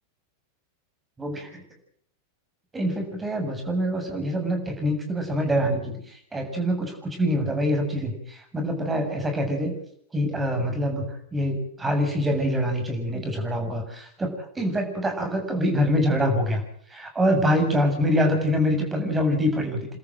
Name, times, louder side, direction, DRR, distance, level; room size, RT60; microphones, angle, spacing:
voice 1, 1.2-1.6 2.7-9.7 10.1-16.6 16.9-19.9, equal, 15° right, 4 dB, 7.3 m, -25 dB
30.0 x 13.5 x 7.8 m, 0.67 s
figure-of-eight pair, 90°, 0 cm